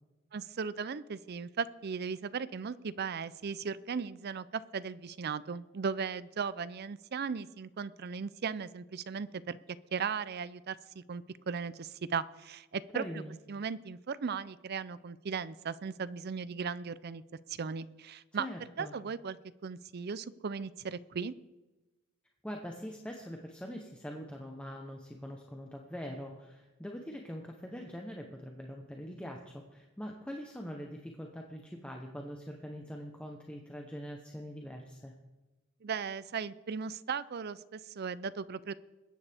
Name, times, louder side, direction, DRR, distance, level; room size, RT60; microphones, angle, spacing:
voice 1, 0.3-9.6 9.9-13.1 13.5-17.2 17.5-18.5 18.8-19.4 19.6-21.3 35.8-38.7, right 6 dB, 50° right, 16 dB, 0.5 m, -37 dB
voice 2, 12.9-13.4 18.4-18.9 22.4-35.1, equal, 5° left, 1 dB, 0.9 m, -43 dB
21.5 x 9.7 x 3.5 m, 1.1 s
head